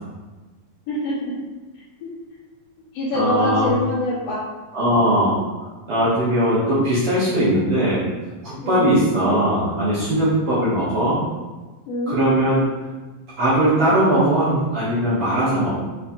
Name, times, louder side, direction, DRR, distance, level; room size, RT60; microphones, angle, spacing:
voice 1, 0.9-1.3 2.0-2.1 2.9-4.4 8.6-9.1 11.9-12.2, left 1 dB, 65° left, -12 dB, 1.9 m, -25 dB
voice 2, 3.1-3.7 4.7-8.0 8.4-11.2 12.1-12.9 13.4-15.7, right 1 dB, 75° right, -10 dB, 1.2 m, -20 dB
6.4 x 2.8 x 2.6 m, 1.2 s
omnidirectional pair, 3.8 m